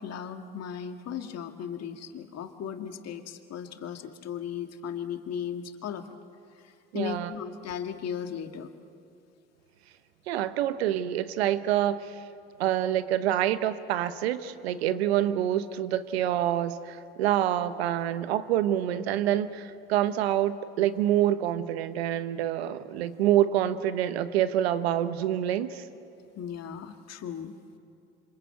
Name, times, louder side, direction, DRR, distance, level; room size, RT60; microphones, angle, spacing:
voice 1, 0.0-6.1 6.6-8.7 26.4-27.5, left 8 dB, 55° left, 6 dB, 2.0 m, -36 dB
voice 2, 6.9-7.3 10.3-12.1 12.6-25.8, right 11 dB, 90° right, 13 dB, 1.0 m, -27 dB
27.0 x 25.5 x 8.2 m, 2.5 s
hypercardioid pair, 65°, 31 cm